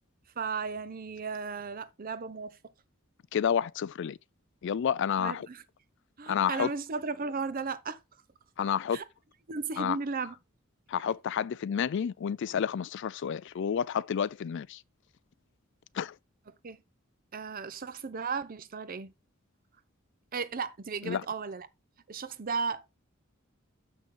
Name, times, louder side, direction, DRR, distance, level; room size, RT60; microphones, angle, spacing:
voice 1, 0.4-2.6 5.2-5.6 6.2-8.0 8.9-9.0 9.5-10.3 16.6-16.8 17.3-19.1 20.3-21.7 22.1-22.9, right 5 dB, 45° right, 0.6 m, -35 dB
voice 2, 3.3-4.2 4.6-5.5 6.3-6.7 8.6-9.0 9.8-10.0 10.9-14.8 15.9-16.1 21.0-21.2, left 8 dB, 60° left, 0.4 m, -30 dB
6.8 x 6.1 x 3.6 m
head